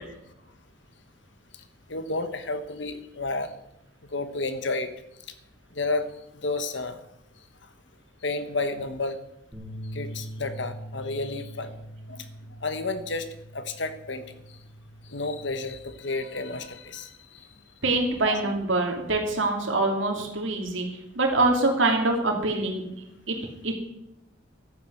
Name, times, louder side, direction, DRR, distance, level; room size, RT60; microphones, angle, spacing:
voice 1, 1.5-3.5 4.0-4.9 5.7-6.1 6.3-7.0 7.6-7.7 8.2-9.2 9.9-11.7 12.1-13.3 13.5-14.6 15.0-17.6 18.3-18.5, left 3 dB, 65° left, 10 dB, 1.4 m, -31 dB
sound 1, 9.5-15.8, equal, 10° right, 3.3 m, -42 dB
voice 2, 17.8-20.9 21.2-22.8 23.3-23.4 23.6-23.7, right 2 dB, 80° right, 2 dB, 2.8 m, -24 dB
12.5 x 9.6 x 7.9 m, 0.84 s
head